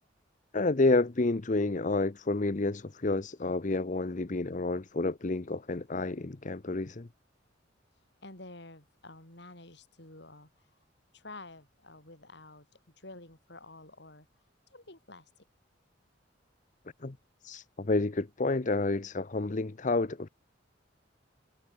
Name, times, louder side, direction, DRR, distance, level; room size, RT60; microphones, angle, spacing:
voice 1, 0.5-7.1 17.0-17.2 17.4-20.3, left 2 dB, 40° left, 0.8 m, -29 dB
voice 2, 8.2-10.7 11.1-14.3 14.7-15.3, left 2 dB, 60° left, 7.9 m, -50 dB
head